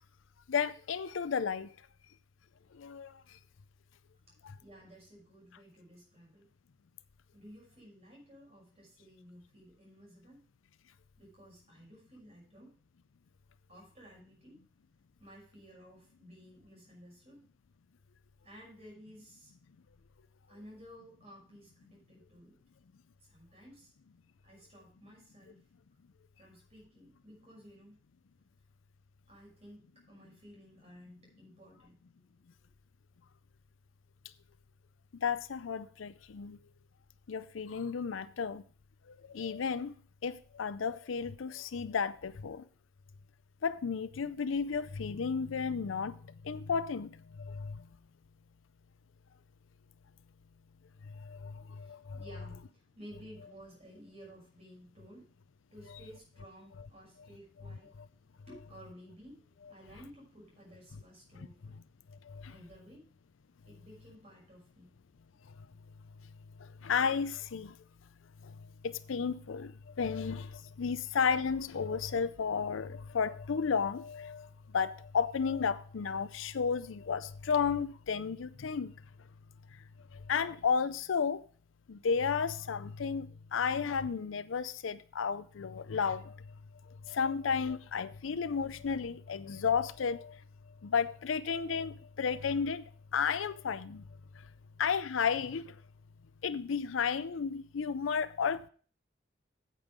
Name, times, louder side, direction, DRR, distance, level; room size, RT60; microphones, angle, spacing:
voice 1, 0.5-1.7 2.8-3.2 35.1-36.6 37.3-38.6 39.1-39.9 40.2-42.6 43.6-46.2 46.4-47.8 51.2-52.2 62.3-62.5 66.8-67.7 68.4-68.5 68.8-74.5 74.7-78.9 80.1-81.4 81.9-86.3 87.1-90.4 90.8-92.8 93.1-94.0 94.8-95.8 96.4-98.7, left 6 dB, 80° left, 0.5 m, -33 dB
voice 2, 4.6-6.5 7.3-10.4 11.2-12.7 13.7-14.6 15.2-17.4 18.4-19.5 20.5-22.6 23.2-23.9 24.4-25.6 26.4-27.9 29.3-32.2 51.5-55.3 55.7-57.9 58.5-61.8 62.5-63.1 63.7-65.0, equal, 35° right, 5.9 m, -55 dB
8.9 x 7.7 x 5.0 m
head